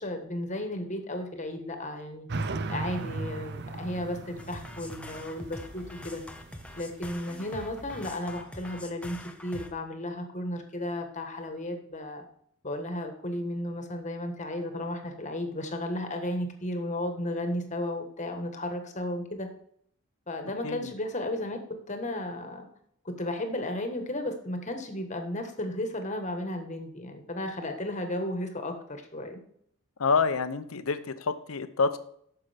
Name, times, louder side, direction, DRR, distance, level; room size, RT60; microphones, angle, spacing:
voice 1, 0.0-2.3 2.7-6.2 6.8-12.2 12.6-19.5 20.3-22.7 23.0-29.4, left 1 dB, 35° left, 5 dB, 1.4 m, -34 dB
sound 1, 2.3-8.1, right 3 dB, 50° right, 0.6 m, -38 dB
sound 2, 4.4-9.7, left 1 dB, 5° left, 0.7 m, -44 dB
voice 2, 30.0-32.0, left 4 dB, 75° left, 11 dB, 0.7 m, -27 dB
9.7 x 6.7 x 3.5 m, 0.66 s
head